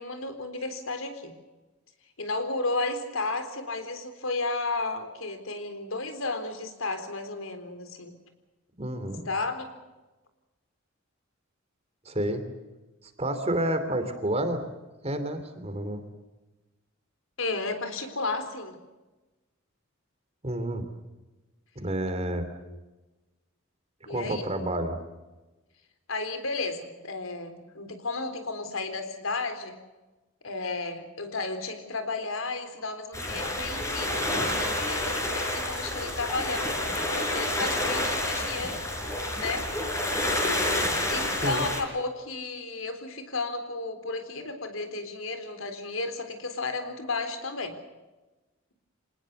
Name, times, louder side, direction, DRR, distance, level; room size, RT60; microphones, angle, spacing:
voice 1, 0.0-1.3 2.2-8.2 9.3-9.7 17.4-18.8 22.6-22.8 24.1-24.5 26.1-29.8 30.4-38.8 39.3-39.7 41.1-47.8, left 3 dB, 85° left, 8 dB, 4.0 m, -33 dB
voice 2, 8.8-9.3 12.0-12.4 13.2-14.6 15.0-16.0 20.4-20.8 21.7-22.5 24.1-25.0 41.4-41.7, right 1 dB, 30° right, 9 dB, 3.1 m, -29 dB
sound 1, 33.1-41.8, left 1 dB, 15° left, 4.8 m, -29 dB
26.5 x 19.5 x 6.8 m, 1.1 s
head